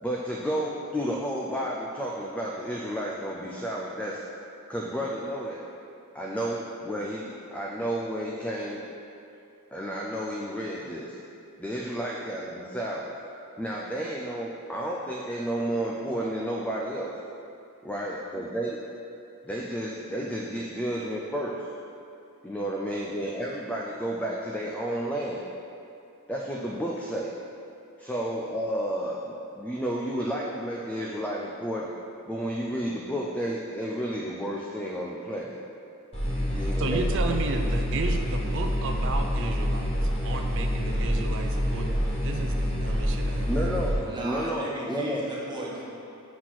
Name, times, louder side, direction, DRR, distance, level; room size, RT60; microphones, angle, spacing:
voice 1, 0.0-4.2 4.7-5.7 6.1-8.8 9.7-11.2 11.6-17.1 17.8-18.8 19.4-21.6 22.4-25.4 26.3-27.3 28.0-31.9 32.3-35.6 36.5-37.3 43.5-45.3, equal, 5° left, -3 dB, 0.4 m, -31 dB
sound 1, 36.1-43.9, equal, 25° left, 1.6 m, -27 dB
voice 2, 36.8-44.2, right 3 dB, 55° right, 5 dB, 0.5 m, -34 dB
voice 3, 44.0-45.8, right 1 dB, 20° right, -6 dB, 1.2 m, -36 dB
6.0 x 4.2 x 6.0 m, 2.7 s
head